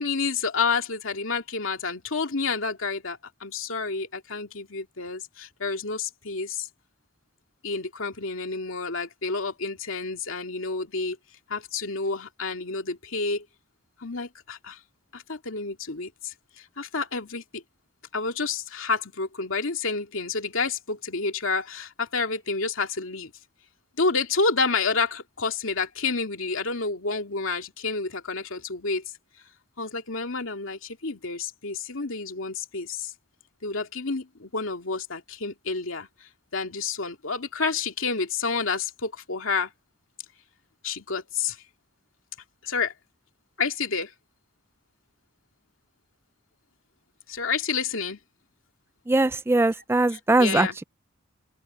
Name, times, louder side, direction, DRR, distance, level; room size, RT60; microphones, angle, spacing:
voice 1, 0.0-6.7 7.6-11.2 11.5-13.5 14.0-14.8 15.1-17.6 18.1-23.3 24.0-29.0 29.8-33.1 33.6-39.7 40.8-41.6 42.6-42.9 43.6-44.1 47.3-48.2 50.1-50.8, left 4 dB, 80° left, 2.4 m, -29 dB
voice 2, 49.1-50.8, right 2 dB, 10° right, 0.3 m, -21 dB
head